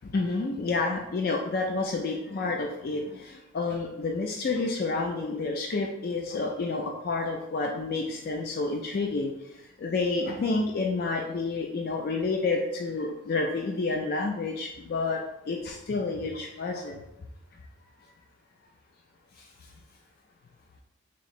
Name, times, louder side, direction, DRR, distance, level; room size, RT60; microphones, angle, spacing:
voice 1, 0.1-9.3 9.8-15.2 15.5-17.0, left 3 dB, 45° left, 2 dB, 0.3 m, -29 dB
3.0 x 2.8 x 4.2 m, 0.91 s
head